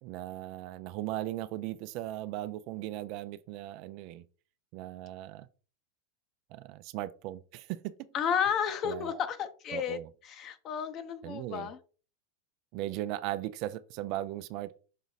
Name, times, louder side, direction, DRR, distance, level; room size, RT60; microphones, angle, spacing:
voice 1, 0.0-4.2 4.7-5.5 6.5-7.9 8.8-9.2 9.7-10.1 11.2-11.7 12.7-14.8, right 14 dB, 50° right, 0.5 m, -38 dB
voice 2, 8.1-10.0 10.2-11.8, left 8 dB, 40° left, 1.0 m, -32 dB
6.2 x 3.9 x 4.0 m
hypercardioid pair, 90°, 0 cm